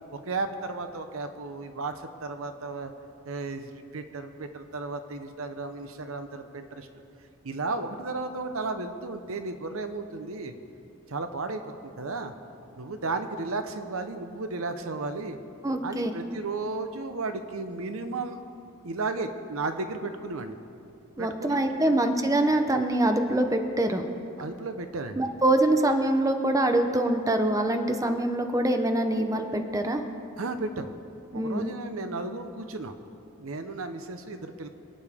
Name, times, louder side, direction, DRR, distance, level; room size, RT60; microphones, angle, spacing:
voice 1, 0.1-1.9 2.2-2.9 3.2-6.9 7.4-10.5 11.1-12.3 12.8-15.4 15.8-18.4 18.8-20.6 21.2-21.6 21.8-22.0 24.4-25.3 30.4-30.9 31.3-32.9 33.4-34.7, right 3 dB, 75° right, 8 dB, 0.9 m, -34 dB
voice 2, 15.6-16.1 21.2-24.0 25.2-30.0 31.3-31.7, right 1 dB, 15° right, 6 dB, 0.7 m, -24 dB
26.0 x 8.8 x 3.6 m, 2.6 s
head